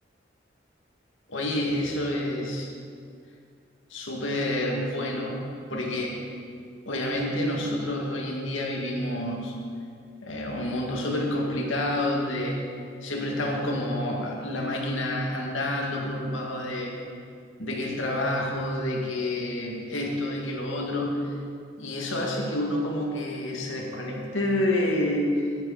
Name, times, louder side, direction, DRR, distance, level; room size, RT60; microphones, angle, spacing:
voice 1, 1.3-2.7 3.9-6.2 6.9-9.6 10.2-12.7 13.0-16.9 17.6-21.3 21.8-25.4, left 1 dB, 90° left, -1 dB, 2.2 m, -28 dB
14.5 x 9.7 x 4.2 m, 2.3 s
head